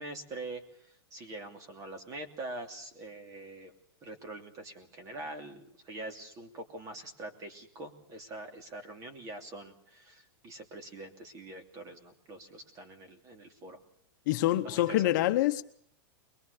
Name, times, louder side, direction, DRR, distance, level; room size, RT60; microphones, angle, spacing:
voice 1, 0.0-3.7 4.0-13.8 14.6-15.0, right 2 dB, 25° right, 2.8 m, -44 dB
voice 2, 14.3-15.6, left 14 dB, 50° left, 1.0 m, -26 dB
23.0 x 22.0 x 6.8 m
supercardioid pair, 165°, 13 cm